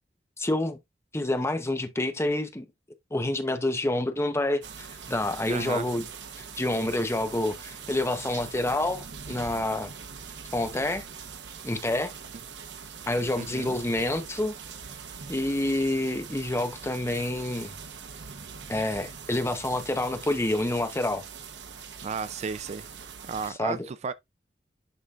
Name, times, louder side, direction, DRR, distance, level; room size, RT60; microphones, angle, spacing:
voice 1, 0.4-0.8 1.1-2.7 3.1-6.1 6.4-9.9 10.5-11.0 11.6-12.1 13.1-14.5 15.3-17.7 18.7-21.2 23.6-23.9, left 1 dB, 15° left, 0.9 m, -28 dB
sound 1, 4.6-23.5, right 6 dB, 70° right, 0.9 m, -42 dB
voice 2, 5.5-5.9 13.4-13.7 22.0-22.9 23.3-24.1, right 5 dB, 40° right, 0.4 m, -33 dB
11.0 x 3.8 x 2.4 m
head